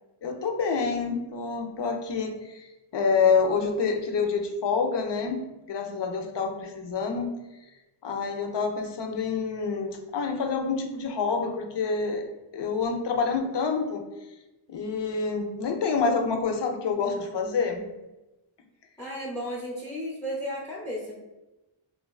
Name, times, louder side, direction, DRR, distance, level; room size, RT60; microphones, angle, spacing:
voice 1, 0.2-2.7 2.9-7.3 8.0-12.2 12.5-14.0 14.7-17.9, left 5 dB, 60° left, 4 dB, 0.5 m, -27 dB
voice 2, 19.0-21.2, equal, 5° left, -4 dB, 0.5 m, -34 dB
2.9 x 2.2 x 2.3 m, 1.0 s
wide cardioid pair, 50°, 50 cm